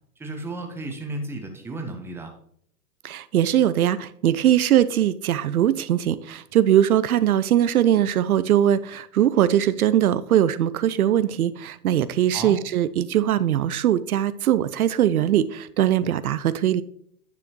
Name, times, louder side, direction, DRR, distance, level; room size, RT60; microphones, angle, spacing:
voice 1, 0.2-2.3 12.3-12.6, right 2 dB, 5° right, 0.9 m, -33 dB
voice 2, 3.0-16.8, right 11 dB, 75° right, 0.5 m, -21 dB
9.6 x 7.0 x 3.0 m
hypercardioid pair, 115°, 45 cm